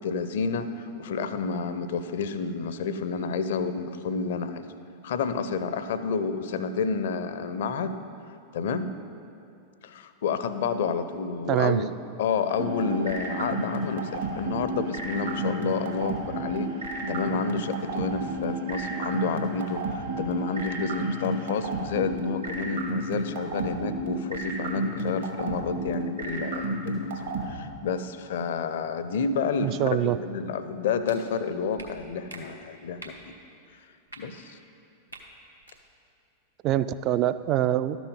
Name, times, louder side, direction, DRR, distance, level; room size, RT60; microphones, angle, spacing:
voice 1, 0.0-4.6 5.0-8.0 8.5-8.9 9.8-11.9 12.2-27.1 27.4-33.1 34.2-34.6, left 5 dB, 60° left, 11 dB, 0.5 m, -30 dB
voice 2, 11.5-11.8 29.6-30.2 36.6-38.0, right 12 dB, 35° right, 13 dB, 0.3 m, -24 dB
sound 1, 12.5-21.9, right 5 dB, 55° right, 1.0 m, -44 dB
sound 2, 12.6-27.4, right 3 dB, 70° right, 1.8 m, -30 dB
sound 3, 31.0-31.2 31.8-31.9 32.3-32.4 33.0-33.2 34.1-34.2 35.1-35.2 35.6-35.8, right 2 dB, 85° right, 1.0 m, -43 dB
12.5 x 6.2 x 5.3 m, 2.6 s
figure-of-eight pair, 90°, 0 cm